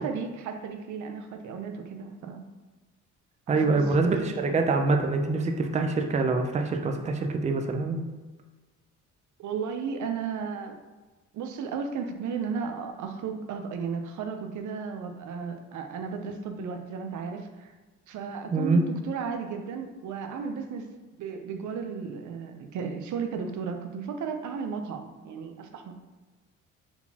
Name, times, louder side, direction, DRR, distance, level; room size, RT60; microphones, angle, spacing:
voice 1, 0.0-2.4 3.5-4.6 9.4-10.8 11.3-17.7 18.1-20.9 21.1-25.9, right 5 dB, 75° right, 5 dB, 0.6 m, -34 dB
voice 2, 3.5-8.0 18.5-18.8, right 3 dB, 25° right, 4 dB, 0.5 m, -25 dB
4.1 x 4.0 x 2.8 m, 1.2 s
cardioid pair, 90°, 30 cm